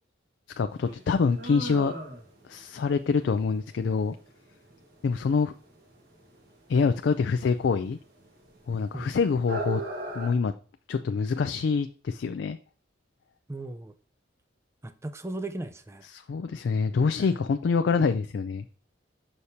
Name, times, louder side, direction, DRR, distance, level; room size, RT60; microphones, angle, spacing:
voice 1, 0.6-1.9 2.5-4.2 5.0-5.5 6.7-8.0 8.7-9.8 10.1-10.5 10.9-12.6 16.1-18.6, left 5 dB, 65° left, 0.3 m, -25 dB
sound 1, 0.7-10.3, right 2 dB, 50° right, 1.6 m, -40 dB
voice 2, 13.5-13.9 14.8-16.1 17.2-17.3, right 2 dB, 15° right, 0.4 m, -37 dB
6.5 x 5.7 x 2.7 m
head